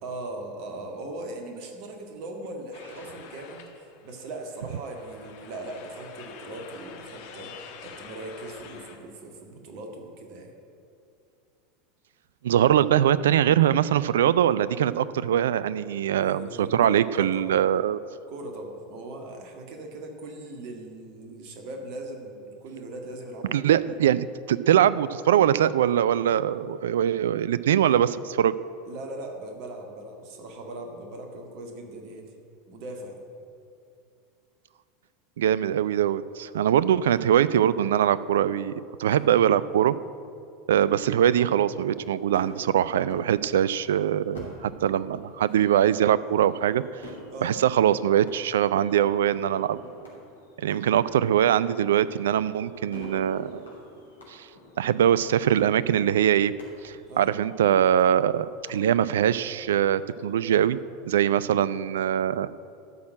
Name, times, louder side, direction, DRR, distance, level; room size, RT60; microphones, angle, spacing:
voice 1, 0.0-10.5 16.2-17.6 18.3-23.6 28.9-32.3 32.7-33.2 39.1-39.3 47.3-47.6 54.8-54.9 57.1-57.3 61.4-61.5, right 2 dB, 50° right, 3 dB, 1.8 m, -39 dB
sound 1, 2.7-9.0, left 7 dB, 55° left, 1.2 m, -46 dB
voice 2, 12.4-18.0 23.5-28.6 35.4-38.7 39.0-40.0 40.7-46.8 47.4-49.8 50.6-53.6 54.3-54.5 54.8-56.5 56.8-60.8 61.1-62.5, right 10 dB, 65° right, 17 dB, 0.3 m, -22 dB
sound 2, 40.8-60.6, left 1 dB, 80° left, 2.7 m, -49 dB
12.0 x 6.2 x 7.7 m, 2.6 s
figure-of-eight pair, 80°, 0 cm